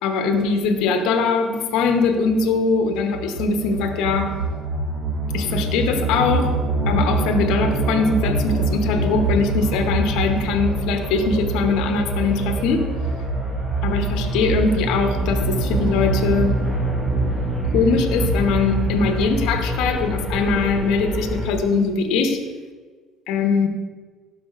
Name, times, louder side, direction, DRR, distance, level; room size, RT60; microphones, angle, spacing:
voice 1, 0.0-4.4 5.3-6.5 6.9-12.8 13.8-16.6 17.7-22.4 23.3-23.7, left 4 dB, 75° left, 5 dB, 0.8 m, -21 dB
sound 1, 2.2-21.5, right 2 dB, 35° right, 2.3 m, -24 dB
12.0 x 4.9 x 2.4 m, 1.5 s
supercardioid pair, 70°, 0 cm